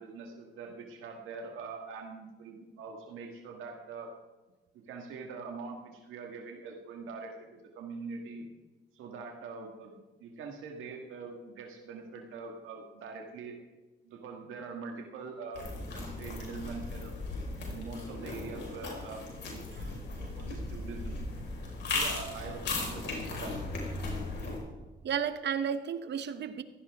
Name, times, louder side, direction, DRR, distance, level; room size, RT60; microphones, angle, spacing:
voice 1, 0.0-4.1 4.7-8.5 8.9-13.6 14.0-15.7 15.9-17.1 17.7-19.7 20.2-21.2 21.9-23.6, right 4 dB, 90° right, 2 dB, 1.7 m, -43 dB
sound 1, 15.5-24.6, left 3 dB, 60° left, 5.0 m, -37 dB
voice 2, 25.0-26.6, right 7 dB, 60° right, 11 dB, 1.1 m, -33 dB
16.5 x 14.5 x 3.6 m, 1.2 s
cardioid pair, 90°, 20 cm